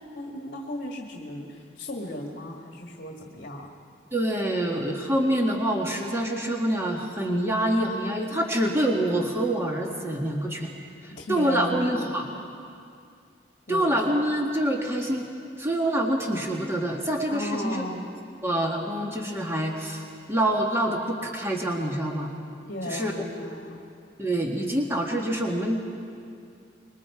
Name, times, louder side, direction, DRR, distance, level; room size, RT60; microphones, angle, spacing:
voice 1, 0.0-3.7 11.2-12.1 13.7-13.9 17.3-18.1 22.7-23.8, left 1 dB, 55° left, 1 dB, 1.7 m, -35 dB
voice 2, 4.1-10.7 11.3-12.2 13.7-15.3 15.6-17.9 18.4-20.0 20.3-22.3 22.9-23.1 24.2-25.8, right 1 dB, 15° right, 0 dB, 1.7 m, -26 dB
26.0 x 22.0 x 4.8 m, 2.4 s
head